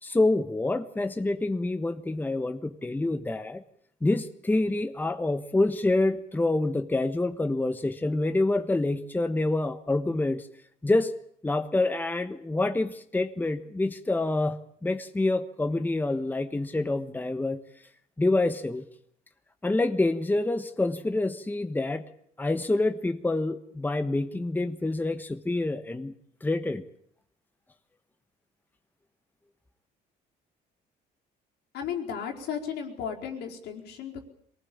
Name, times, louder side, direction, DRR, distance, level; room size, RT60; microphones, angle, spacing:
voice 1, 0.0-3.6 4.0-10.5 10.8-11.1 11.4-17.6 18.2-18.8 19.6-22.0 22.4-26.1 26.4-26.8, left 2 dB, 10° left, 7 dB, 1.3 m, -27 dB
voice 2, 31.7-34.3, left 7 dB, 80° left, 1 dB, 4.7 m, -34 dB
23.5 x 19.0 x 8.7 m, 0.66 s
cardioid pair, 110°, 17 cm